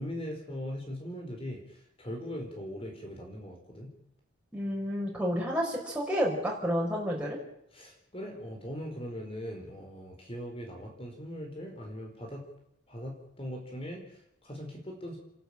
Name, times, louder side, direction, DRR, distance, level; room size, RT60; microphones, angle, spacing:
voice 1, 0.0-3.9 7.7-12.4 12.9-15.2, equal, 30° left, 2 dB, 4.6 m, -40 dB
voice 2, 4.5-7.4, equal, 5° right, -3 dB, 5.4 m, -30 dB
29.0 x 12.0 x 8.9 m, 0.77 s
head